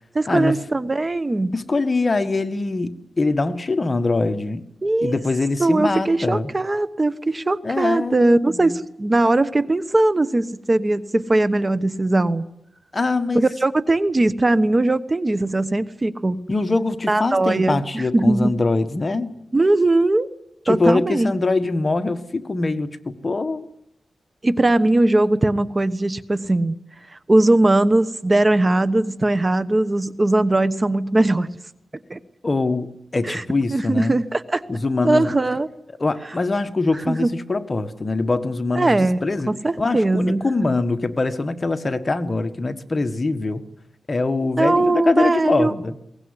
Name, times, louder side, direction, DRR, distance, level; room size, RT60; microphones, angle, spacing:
voice 1, 0.1-1.5 4.8-5.2 5.6-12.4 13.3-16.4 17.1-18.5 19.5-20.3 20.7-21.3 24.4-26.7 27.1-31.5 32.1-32.2 33.2-33.4 33.7-34.6 35.0-35.7 37.1-37.3 38.7-39.2 39.5-40.7 44.6-45.7, right 2 dB, 30° right, 14 dB, 1.1 m, -20 dB
voice 2, 1.5-4.6 5.0-6.5 7.6-8.8 12.9-13.4 16.5-19.4 20.7-23.7 32.4-34.2 34.7-35.3 35.9-39.5 39.8-43.6 44.1-46.0, left 3 dB, 40° left, 9 dB, 1.6 m, -23 dB
22.0 x 19.0 x 9.8 m, 0.81 s
cardioid pair, 70°, 0 cm